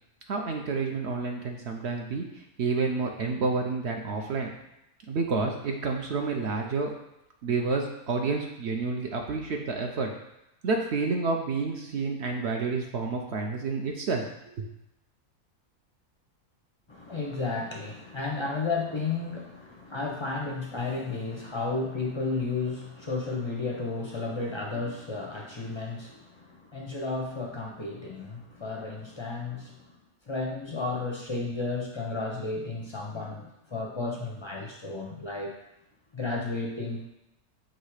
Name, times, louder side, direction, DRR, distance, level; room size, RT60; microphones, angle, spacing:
voice 1, 0.3-2.2 2.6-4.5 5.1-6.9 7.4-10.1 10.6-14.2 14.6-14.7, right 4 dB, 60° right, 2 dB, 0.8 m, -29 dB
voice 2, 16.9-29.9 30.3-35.5 36.1-37.1, left 3 dB, 35° left, -1 dB, 0.4 m, -33 dB
6.4 x 3.1 x 4.8 m, 0.87 s
omnidirectional pair, 1.6 m